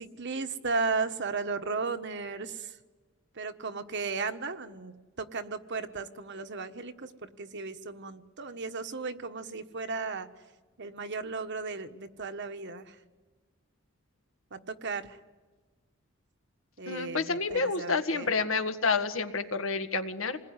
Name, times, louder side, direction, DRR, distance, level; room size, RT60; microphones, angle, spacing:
voice 1, 0.0-2.8 3.3-10.3 10.8-13.0 14.5-15.2 16.8-18.3, right 4 dB, 60° right, 8 dB, 1.4 m, -35 dB
voice 2, 16.9-20.4, left 4 dB, 75° left, 7 dB, 1.8 m, -29 dB
27.5 x 20.5 x 9.8 m, 1.3 s
head